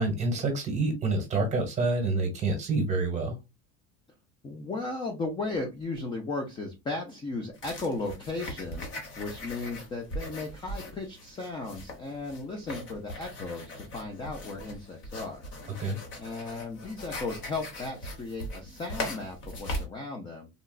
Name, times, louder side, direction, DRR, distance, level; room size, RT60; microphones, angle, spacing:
voice 1, 0.0-3.4 15.8-16.0, right 3 dB, 20° right, 3 dB, 1.2 m, -27 dB
voice 2, 4.4-8.9 9.2-15.8 16.2-20.5, left 3 dB, 15° left, 3 dB, 0.4 m, -36 dB
sound 1, 7.5-19.8, left 1 dB, 35° left, 1.1 m, -40 dB
3.9 x 2.2 x 2.3 m, 0.24 s
cardioid pair, 170°, 32 cm